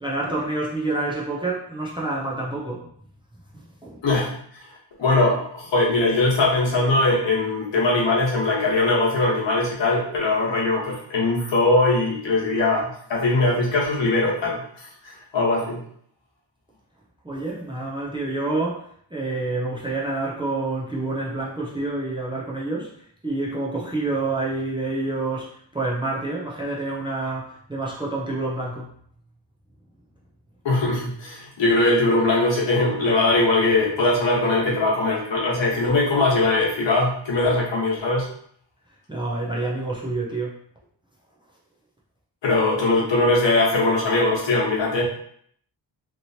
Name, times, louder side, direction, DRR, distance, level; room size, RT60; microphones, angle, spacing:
voice 1, 0.0-2.9 3.8-4.0 17.2-18.8 19.1-22.9 23.2-28.9 39.1-40.6, right 2 dB, 10° right, -4 dB, 0.5 m, -28 dB
voice 2, 4.0-4.3 5.0-15.8 30.6-38.3 42.4-45.0, left 2 dB, 75° left, -4 dB, 1.2 m, -21 dB
3.0 x 2.9 x 2.7 m, 0.64 s
wide cardioid pair, 165°, 44 cm